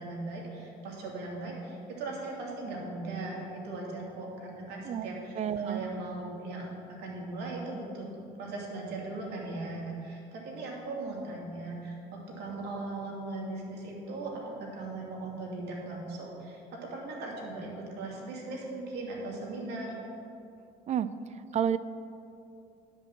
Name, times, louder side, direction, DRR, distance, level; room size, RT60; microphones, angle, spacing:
voice 1, 0.0-8.1 8.4-16.6 16.9-20.0, right 2 dB, 80° right, -2 dB, 2.5 m, -38 dB
voice 2, 5.4-5.8 20.9-21.1 21.5-21.8, right 9 dB, 40° right, 14 dB, 0.4 m, -29 dB
10.5 x 5.3 x 7.2 m, 2.6 s
cardioid pair, 110°, 17 cm